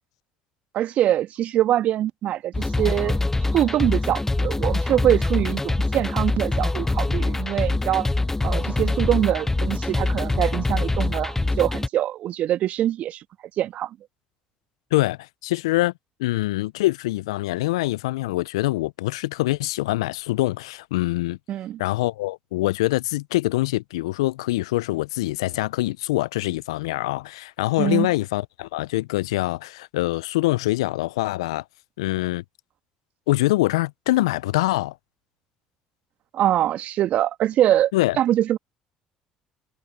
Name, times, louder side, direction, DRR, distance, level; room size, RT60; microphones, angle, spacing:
voice 1, 0.7-3.2 3.5-8.1 8.4-13.2 13.6-14.0 21.5-21.8 27.8-28.1 36.3-37.9 38.2-38.6, right 12 dB, 55° right, 2.0 m, -23 dB
sound 1, 2.5-11.9, left 2 dB, 15° left, 0.7 m, -24 dB
voice 2, 14.9-15.9 16.2-21.4 21.8-31.6 32.0-32.4 33.3-34.9 37.9-38.2, left 18 dB, 75° left, 0.8 m, -24 dB
hypercardioid pair, 55°, 3 cm